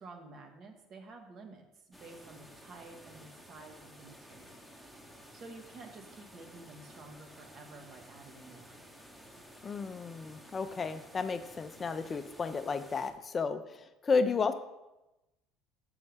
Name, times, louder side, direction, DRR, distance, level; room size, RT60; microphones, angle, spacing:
voice 1, 0.0-4.6 5.3-8.7, right 3 dB, 50° right, 4 dB, 1.2 m, -51 dB
sound 1, 1.9-13.1, equal, 5° right, 1.0 m, -54 dB
voice 2, 9.6-14.5, left 5 dB, 35° left, 10 dB, 0.5 m, -32 dB
6.9 x 5.4 x 3.3 m, 0.98 s
hypercardioid pair, 70°, 0 cm